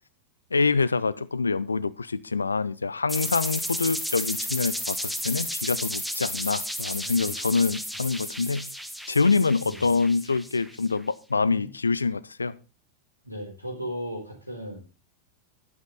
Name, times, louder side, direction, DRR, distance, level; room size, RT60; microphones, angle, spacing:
voice 1, 0.5-8.7 9.1-12.5, left 4 dB, 75° left, 17 dB, 0.7 m, -25 dB
sound 1, 3.1-10.9, equal, ahead, 1.2 m, -33 dB
voice 2, 13.2-14.8, equal, 90° right, 2 dB, 4.1 m, -36 dB
11.5 x 10.5 x 4.0 m, 0.32 s
figure-of-eight pair, 90°, 0 cm